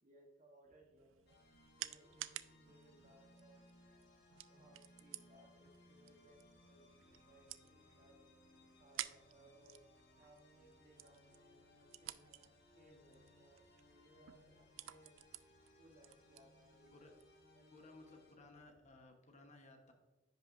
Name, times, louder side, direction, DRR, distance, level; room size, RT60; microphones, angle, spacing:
voice 1, 0.0-1.4 1.8-4.1 4.4-6.9 7.2-8.3 8.5-9.8 10.2-12.4 12.7-15.2 15.8-17.0 17.5-17.7, right 1 dB, 40° right, 2 dB, 1.1 m, -66 dB
sound 1, 0.6-19.0, right 2 dB, 90° right, 0.7 m, -77 dB
sound 2, 1.0-17.4, right 14 dB, 70° right, 0.3 m, -54 dB
sound 3, 1.3-18.3, left 2 dB, 55° left, 1.3 m, -66 dB
voice 2, 17.7-19.9, left 2 dB, 35° left, 4 dB, 1.0 m, -59 dB
10.0 x 5.7 x 2.5 m, 1.2 s
head